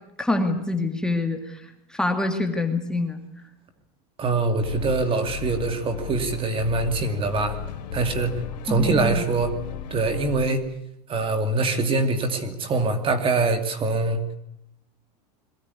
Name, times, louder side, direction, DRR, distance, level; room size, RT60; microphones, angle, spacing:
voice 1, 0.2-1.6 1.9-3.2 8.7-9.2, left 2 dB, 5° left, 4 dB, 2.1 m, -25 dB
voice 2, 4.2-7.6 7.9-8.3 8.6-9.5 9.9-10.7 11.1-14.2, right 3 dB, 25° right, 8 dB, 2.5 m, -24 dB
sound 1, 4.6-10.5, left 9 dB, 85° left, 2.0 m, -35 dB
22.5 x 16.0 x 9.7 m, 0.84 s
supercardioid pair, 135°, 21 cm